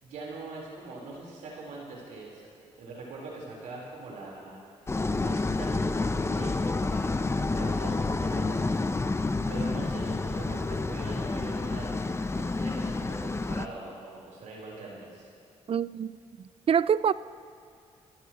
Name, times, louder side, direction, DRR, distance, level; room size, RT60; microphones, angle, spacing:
voice 1, 0.0-2.5 2.8-4.6 5.1-7.1 7.4-9.0 9.5-11.9 12.3-15.3, right 3 dB, 85° right, 4.3 m, -42 dB
sound 1, 4.9-13.7, left 3 dB, 20° left, 0.6 m, -29 dB
voice 2, 15.7-16.1 16.7-17.1, right 8 dB, 45° right, 0.4 m, -24 dB
29.0 x 14.5 x 3.1 m
cardioid pair, 70°, 13 cm